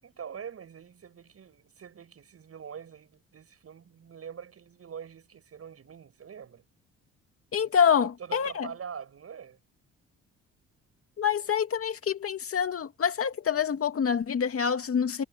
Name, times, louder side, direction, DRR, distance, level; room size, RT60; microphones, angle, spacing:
voice 1, 0.0-6.6 7.5-7.9 8.2-9.6, right 7 dB, 50° right, 7.1 m, -44 dB
voice 2, 7.5-8.7 11.2-15.2, left 7 dB, 50° left, 2.5 m, -26 dB
cardioid pair, 90°, 30 cm